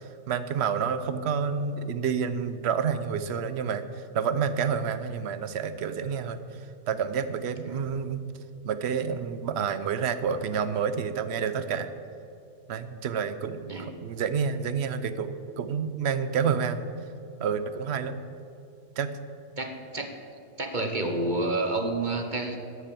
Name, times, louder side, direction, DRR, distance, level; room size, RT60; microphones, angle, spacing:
voice 1, 0.3-3.9 4.1-6.4 6.9-8.2 8.6-11.9 12.7-16.8 17.4-18.2 19.0-19.2, right 6 dB, 55° right, 11 dB, 0.8 m, -29 dB
voice 2, 19.6-20.1 20.6-22.6, right 2 dB, 35° right, 4 dB, 1.1 m, -29 dB
13.0 x 8.2 x 6.9 m, 2.7 s
omnidirectional pair, 1.6 m